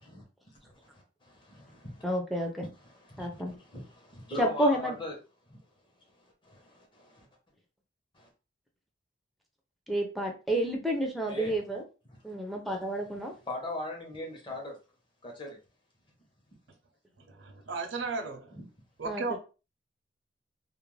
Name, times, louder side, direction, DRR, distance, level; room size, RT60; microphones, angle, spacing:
voice 1, 1.4-2.0 2.6-5.1 5.5-5.6 6.5-7.3 8.2-8.3 11.3-11.5 13.5-14.8 15.2-15.6 18.5-18.6, left 2 dB, 25° left, 0.8 m, -40 dB
voice 2, 2.0-2.7 3.2-3.5 4.4-5.0 9.9-11.8 12.2-13.3 19.0-19.4, right 1 dB, ahead, 0.4 m, -30 dB
voice 3, 17.2-18.5 19.0-19.4, right 3 dB, 80° right, 0.5 m, -35 dB
2.4 x 2.0 x 3.1 m
head